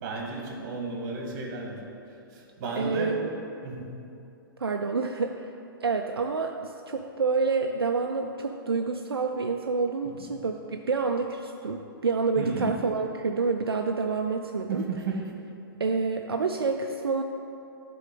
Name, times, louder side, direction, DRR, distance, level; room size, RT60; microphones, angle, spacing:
voice 1, 0.0-1.8 2.3-3.2 3.6-3.9 10.2-10.3 12.4-12.8 14.7-15.3, right 4 dB, 45° right, 0 dB, 1.7 m, -33 dB
voice 2, 2.8-3.3 4.6-5.6 5.8-14.8 15.8-17.2, right 4 dB, 85° right, 4 dB, 0.4 m, -28 dB
11.0 x 3.9 x 5.3 m, 2.7 s
figure-of-eight pair, 120°, 12 cm